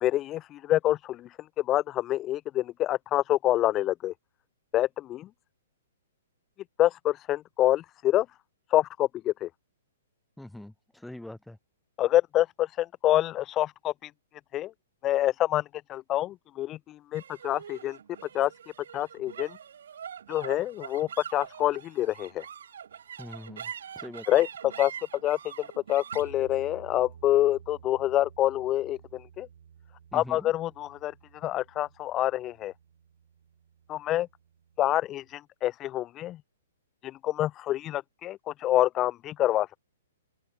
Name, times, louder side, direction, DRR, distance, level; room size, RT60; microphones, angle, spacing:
voice 1, 0.0-4.1 4.7-5.3 6.8-8.3 8.7-9.5 12.0-14.1 14.5-14.7 15.0-18.0 18.3-18.5 18.9-19.6 20.3-22.5 24.3-24.5 24.8-24.9 25.2-25.4 25.9-29.5 30.1-32.7 33.9-34.3 34.8-36.4 37.0-39.8, left 14 dB, 25° left, 0.4 m, -27 dB
voice 2, 10.4-11.6 23.2-24.3 30.1-30.5, left 1 dB, 5° left, 1.8 m, -43 dB
sound 1, 17.1-33.7, right 8 dB, 65° right, 3.4 m, -45 dB
open air
figure-of-eight pair, 120°, 0 cm